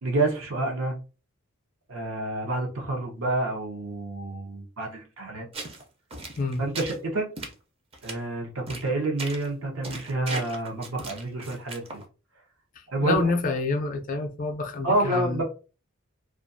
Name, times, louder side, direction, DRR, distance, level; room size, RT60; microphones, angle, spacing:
voice 1, 0.0-1.0 1.9-5.5 6.6-7.3 8.0-12.0 12.9-13.2 14.8-15.4, right 2 dB, 75° right, 0.8 m, -28 dB
sound 1, 5.5-5.8 6.1-7.0 7.4-7.5 7.9-8.1 8.7-8.9 9.2-9.5 9.8-12.0, right 2 dB, 30° right, 0.5 m, -37 dB
voice 2, 13.0-15.4, left 3 dB, 40° left, 0.4 m, -27 dB
2.4 x 2.3 x 2.5 m
head